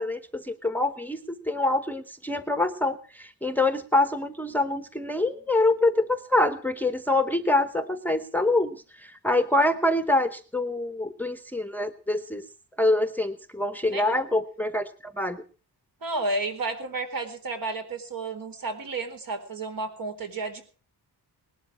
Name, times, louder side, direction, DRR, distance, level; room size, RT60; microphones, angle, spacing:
voice 1, 0.0-8.8 9.0-12.4 12.8-15.4, left 2 dB, 5° left, 10 dB, 0.9 m, -25 dB
voice 2, 13.8-14.3 16.0-20.6, right 3 dB, 60° right, 7 dB, 4.1 m, -32 dB
19.0 x 12.0 x 6.1 m, 0.39 s
wide cardioid pair, 160°, 38 cm